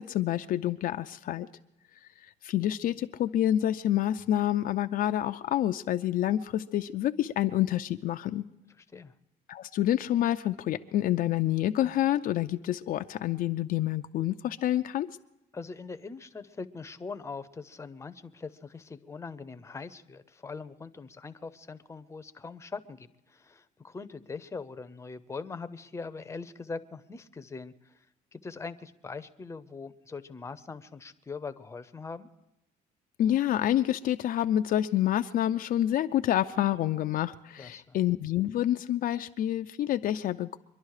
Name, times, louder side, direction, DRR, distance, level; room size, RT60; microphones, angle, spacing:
voice 1, 0.0-1.5 2.4-8.4 9.5-15.1 33.2-40.6, left 12 dB, 60° left, 8 dB, 0.5 m, -28 dB
voice 2, 8.8-9.1 15.5-28.0 28.3-32.3 37.6-38.0, left 4 dB, 15° left, 11 dB, 0.7 m, -42 dB
24.0 x 11.0 x 4.8 m, 0.86 s
cardioid pair, 110°, 17 cm